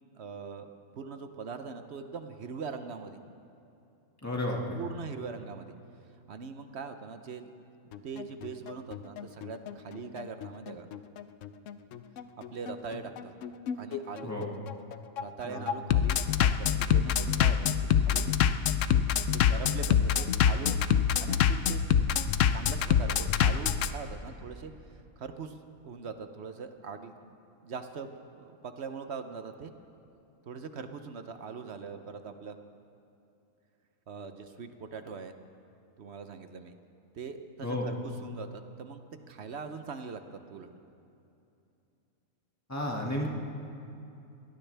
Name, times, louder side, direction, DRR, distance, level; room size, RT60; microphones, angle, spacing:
voice 1, 0.2-0.7 1.0-3.2 4.7-5.7 6.3-7.5 8.0-10.9 12.4-13.3 13.7-14.3 15.2-18.4 19.3-20.8 21.2-21.8 22.5-25.6 25.8-28.1 28.4-29.7 30.5-32.6 34.1-35.3 36.0-36.8 37.1-40.7, right 5 dB, 55° right, 8 dB, 1.0 m, -42 dB
voice 2, 4.2-4.8 14.2-14.5 15.5-15.6 37.6-37.9 42.7-43.3, left 1 dB, 10° left, -2 dB, 2.0 m, -32 dB
Bass drum, 7.9-23.9, left 8 dB, 70° left, 0.9 m, -26 dB
22.5 x 19.0 x 3.4 m, 2.7 s
omnidirectional pair, 1.5 m